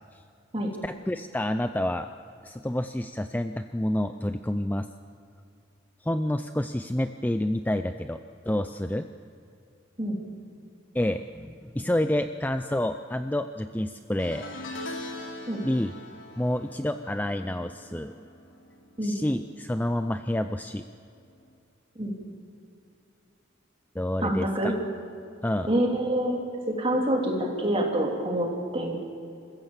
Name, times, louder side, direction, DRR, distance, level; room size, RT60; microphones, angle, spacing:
voice 1, 0.8-2.1 2.4-4.9 6.0-8.2 8.5-9.1 10.9-14.5 15.6-15.9 16.4-18.2 19.0-20.9 24.0-24.7 25.4-25.7, left 1 dB, 10° left, 9 dB, 0.4 m, -28 dB
sound 1, 14.2-19.6 19.8-20.2 21.5-21.6, left 2 dB, 80° left, 3.1 m, -42 dB
voice 2, 24.2-24.7 25.6-26.4 26.7-29.0, right 1 dB, 30° right, -1 dB, 3.2 m, -26 dB
27.5 x 15.0 x 7.3 m, 2.6 s
head